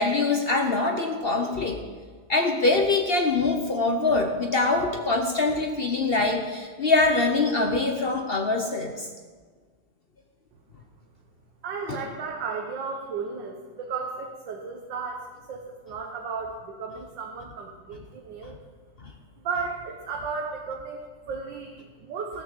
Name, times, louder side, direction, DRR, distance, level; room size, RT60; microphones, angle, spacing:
voice 1, 0.0-1.8 2.3-9.1 11.9-12.0, left 3 dB, 65° left, 3 dB, 0.5 m, -24 dB
voice 2, 11.6-15.2 15.5-18.6 19.4-22.4, right 5 dB, 65° right, 1 dB, 1.6 m, -34 dB
14.5 x 6.7 x 6.8 m, 1.5 s
omnidirectional pair, 2.2 m